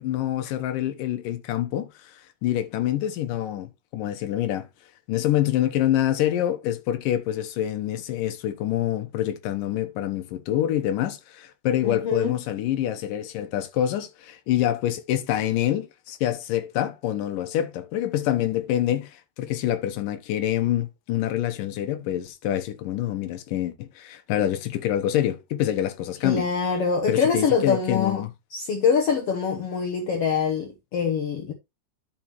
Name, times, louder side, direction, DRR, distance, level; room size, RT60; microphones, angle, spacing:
voice 1, 0.0-2.1 2.4-4.7 5.1-26.5 27.1-28.3, left 12 dB, 80° left, 2.6 m, -26 dB
voice 2, 11.8-12.4 26.2-28.3 28.5-31.5, left 6 dB, 60° left, 1.7 m, -24 dB
11.0 x 6.0 x 3.0 m
omnidirectional pair, 3.8 m